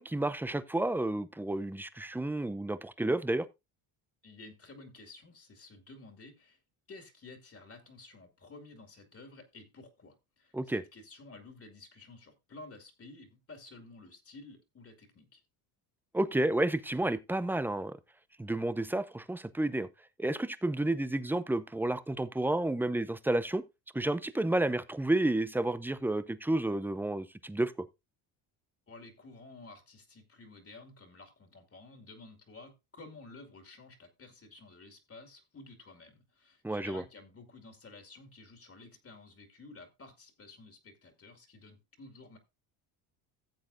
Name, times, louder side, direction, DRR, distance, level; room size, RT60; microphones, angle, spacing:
voice 1, 0.0-3.5 10.5-10.8 16.1-18.0 18.4-19.9 20.2-23.6 23.9-27.7 36.6-37.0, right 1 dB, 5° right, 0.5 m, -31 dB
voice 2, 4.2-6.6 6.9-15.4 28.9-42.4, left 3 dB, 30° left, 2.2 m, -52 dB
14.5 x 7.5 x 2.6 m
cardioid pair, 105°, 46 cm